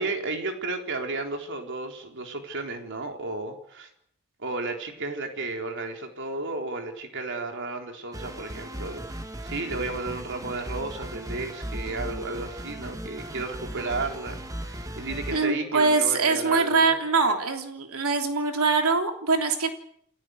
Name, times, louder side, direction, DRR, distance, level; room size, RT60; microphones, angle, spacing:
voice 1, 0.0-3.9 4.4-16.8, right 3 dB, 55° right, 4 dB, 3.9 m, -33 dB
sound 1, 8.1-15.5, right 1 dB, 15° right, 1.9 m, -37 dB
voice 2, 15.3-19.7, right 4 dB, 75° right, 5 dB, 3.3 m, -23 dB
29.0 x 15.5 x 8.0 m, 0.68 s
head